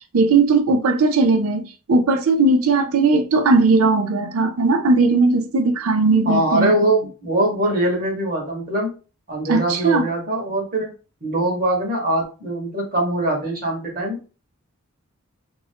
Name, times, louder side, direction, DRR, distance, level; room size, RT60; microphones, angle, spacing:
voice 1, 0.1-6.8 9.5-10.1, right 3 dB, 75° right, 0.5 m, -18 dB
voice 2, 6.3-8.9 9.3-10.9 11.2-14.3, right 1 dB, 40° right, 1.1 m, -22 dB
2.6 x 2.4 x 3.3 m
head